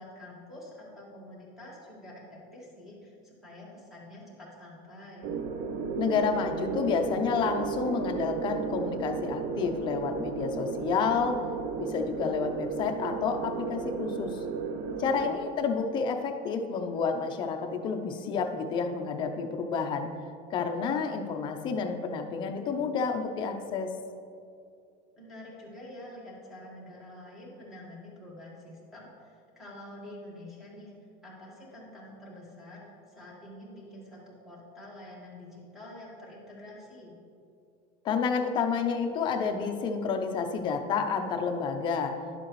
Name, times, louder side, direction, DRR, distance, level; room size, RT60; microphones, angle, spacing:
voice 1, 0.0-5.3 14.9-15.3 25.2-30.9 31.2-37.1, left 1 dB, ahead, -6 dB, 1.7 m, -47 dB
sound 1, 5.2-15.3, right 5 dB, 55° right, 0.6 m, -34 dB
voice 2, 6.0-11.4 11.8-14.4 15.0-20.1 20.5-23.9 38.0-42.1, left 5 dB, 25° left, 5 dB, 0.5 m, -30 dB
11.0 x 7.5 x 3.1 m, 2.4 s
cardioid pair, 175°, 18 cm